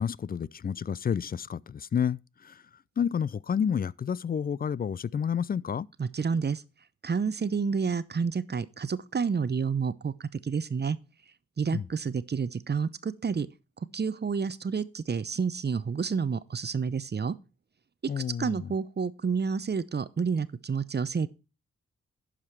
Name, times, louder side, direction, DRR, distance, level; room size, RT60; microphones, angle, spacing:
voice 1, 0.0-2.6 3.0-5.9 11.7-11.8 18.1-18.7, left 7 dB, 30° left, 0.4 m, -30 dB
voice 2, 6.0-6.6 7.0-11.0 11.6-13.5 13.9-17.4 18.2-21.3, right 5 dB, 35° right, 0.7 m, -29 dB
11.5 x 5.0 x 4.6 m
supercardioid pair, 40°, 30 cm